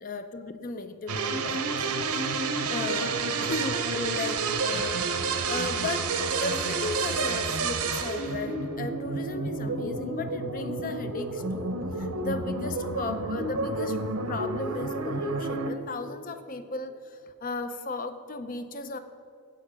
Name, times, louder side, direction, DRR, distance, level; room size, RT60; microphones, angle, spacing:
voice 1, 0.0-2.3 2.7-5.0 5.4-14.0 14.3-19.0, left 3 dB, 35° left, 10 dB, 0.5 m, -36 dB
sound 1, 1.1-15.7, right 4 dB, 85° right, 0.9 m, -30 dB
15.5 x 5.4 x 5.1 m, 2.5 s
head